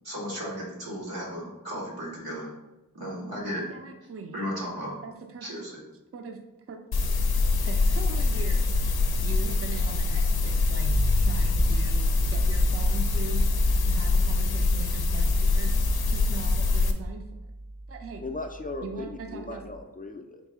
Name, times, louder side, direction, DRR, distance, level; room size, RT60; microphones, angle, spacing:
voice 1, 0.0-2.5 2.9-3.7 4.3-4.9 5.4-5.8, equal, 90° right, -5 dB, 1.3 m, -34 dB
voice 2, 3.7-4.5 5.0-5.5 6.1-6.4 6.7-6.8 7.6-9.0 9.2-10.9 11.2-13.5 13.9-15.7 16.1-17.3 17.9-18.2 18.8-19.6, right 4 dB, 40° right, 5 dB, 0.5 m, -40 dB
sound 1, 6.9-16.9, left 3 dB, 85° left, 0.5 m, -24 dB
sound 2, 10.8-19.8, right 1 dB, 75° right, 1.1 m, -33 dB
voice 3, 18.2-20.4, left 2 dB, 25° left, 4 dB, 0.4 m, -37 dB
4.0 x 2.7 x 3.5 m, 1.0 s
wide cardioid pair, 40°, 36 cm